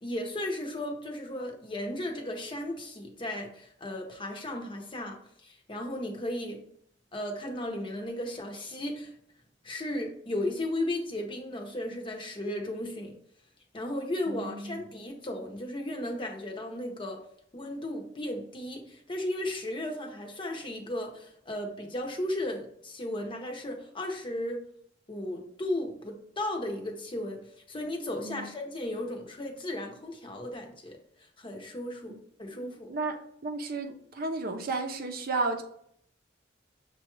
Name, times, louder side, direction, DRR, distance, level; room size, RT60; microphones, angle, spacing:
voice 1, 0.0-5.2 5.4-6.6 7.1-9.1 9.6-13.1 13.7-17.2 17.5-24.6 25.1-27.4 27.7-31.0 31.4-32.1 32.4-32.9, left 1 dB, 25° left, 2 dB, 0.8 m, -35 dB
voice 2, 14.3-14.8 28.2-28.5 32.5-33.2 33.4-35.6, right 3 dB, 55° right, 5 dB, 0.6 m, -33 dB
6.3 x 2.3 x 3.0 m, 0.68 s
head